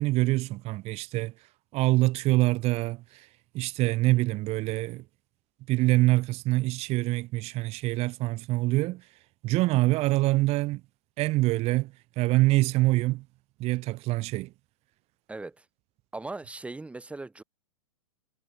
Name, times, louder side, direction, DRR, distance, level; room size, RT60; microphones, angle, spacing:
voice 1, 0.0-1.3 1.7-3.0 3.5-5.0 5.7-9.0 9.4-10.8 11.2-13.2 13.6-14.5, right 19 dB, 35° right, 2.6 m, -25 dB
voice 2, 15.3-15.7 16.1-17.4, right 2 dB, 5° right, 3.8 m, -39 dB
figure-of-eight pair, 110°, 19 cm